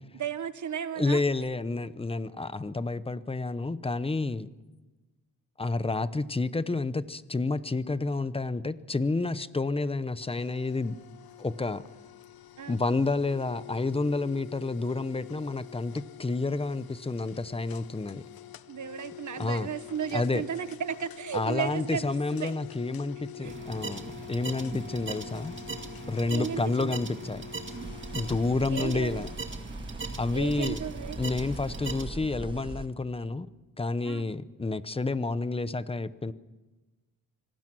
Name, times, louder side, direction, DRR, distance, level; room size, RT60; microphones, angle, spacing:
voice 1, 0.1-1.5 12.6-12.8 18.7-22.5 23.4-23.5 26.3-27.0 28.6-29.2 30.0-31.2 34.0-34.3, right 8 dB, 55° right, 12 dB, 1.3 m, -35 dB
voice 2, 1.0-4.5 5.6-11.0 11.4-11.8 12.7-18.3 19.4-19.7 20.1-20.4 21.3-25.6 26.1-27.4 28.1-29.3 30.2-30.8 31.2-33.5 33.8-36.3, left 3 dB, 15° left, 15 dB, 0.8 m, -30 dB
sound 1, 10.2-29.4, left 13 dB, 80° left, 1.0 m, -46 dB
sound 2, 23.4-32.0, right 4 dB, 30° right, 2.1 m, -40 dB
sound 3, 27.8-32.9, right 2 dB, 15° right, 1.4 m, -40 dB
26.5 x 19.0 x 6.2 m, 1.2 s
cardioid pair, 115°, 36 cm